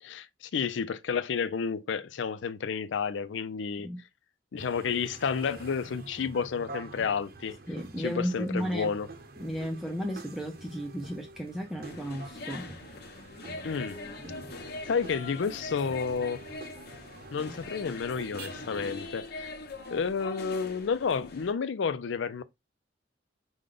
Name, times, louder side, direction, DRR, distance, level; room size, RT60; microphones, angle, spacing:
voice 1, 0.0-3.9 4.5-7.6 8.0-9.1 13.6-14.0 14.9-16.4 17.3-19.5 19.9-22.4, left 6 dB, 80° left, 0.4 m, -31 dB
sound 1, 4.6-18.9, right 2 dB, 55° right, 0.7 m, -47 dB
voice 2, 7.7-8.9 9.4-12.7, equal, ahead, 0.5 m, -34 dB
sound 2, 11.8-21.5, left 2 dB, 60° left, 0.9 m, -42 dB
5.0 x 2.2 x 3.8 m
head